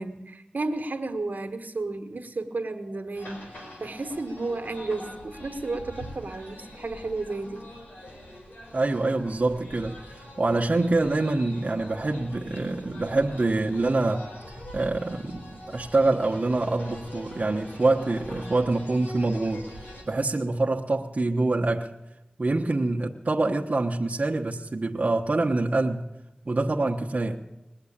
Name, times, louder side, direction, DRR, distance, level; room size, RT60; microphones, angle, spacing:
voice 1, 0.0-3.4 3.8-7.7, right 3 dB, 70° right, 6 dB, 1.3 m, -32 dB
sound 1, 3.1-20.0, left 1 dB, 90° left, 4.6 m, -43 dB
voice 2, 8.7-14.2 14.7-21.9 22.4-26.1 26.5-27.4, right 2 dB, 55° right, -1 dB, 1.1 m, -25 dB
20.0 x 7.8 x 8.6 m, 0.95 s
cardioid pair, 45°, 3 cm